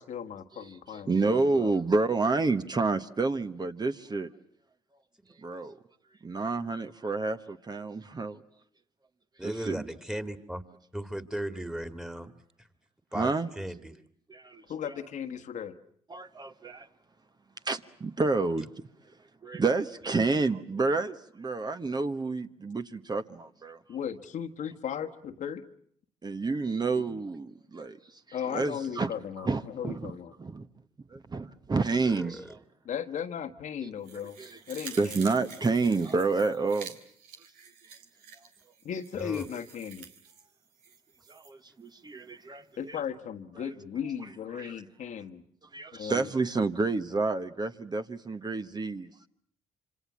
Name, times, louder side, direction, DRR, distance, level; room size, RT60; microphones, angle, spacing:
voice 1, 0.0-1.8 14.7-15.7 23.9-25.6 28.3-30.3 32.8-34.4 34.7-35.3 38.8-40.1 42.8-45.4 45.9-46.3, left 8 dB, 65° left, 1.5 m, -36 dB
voice 2, 0.6-4.3 5.4-5.8 6.2-8.4 9.4-9.9 13.1-13.5 14.3-14.6 16.1-16.9 17.6-18.7 19.4-23.8 26.2-28.0 28.5-29.1 29.4-30.1 30.4-30.7 31.1-32.6 33.8-33.9 34.4-34.6 34.9-37.0 41.3-43.0 44.5-44.7 45.7-49.1, right 3 dB, 30° right, 1.2 m, -29 dB
voice 3, 9.4-10.6 10.9-12.3 13.1-13.3 13.6-13.9 32.1-32.4 39.2-39.5, right 1 dB, 5° right, 2.2 m, -36 dB
sound 1, 34.0-41.5 41.9-42.0, right 6 dB, 90° right, 2.2 m, -48 dB
26.5 x 26.0 x 7.3 m
supercardioid pair, 65°, 14 cm